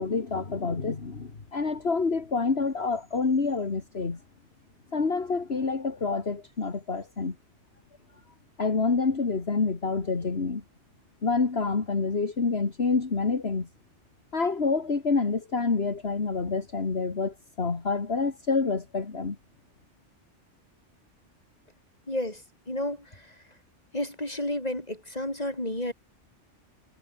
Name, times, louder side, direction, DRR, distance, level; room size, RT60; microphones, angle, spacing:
voice 1, 0.0-4.2 4.9-7.4 8.6-10.6 11.2-13.7 14.3-19.4, left 4 dB, 60° left, 2.3 m, -27 dB
voice 2, 22.1-23.4 23.9-25.9, left 1 dB, 35° left, 5.4 m, -32 dB
omnidirectional pair, 1.2 m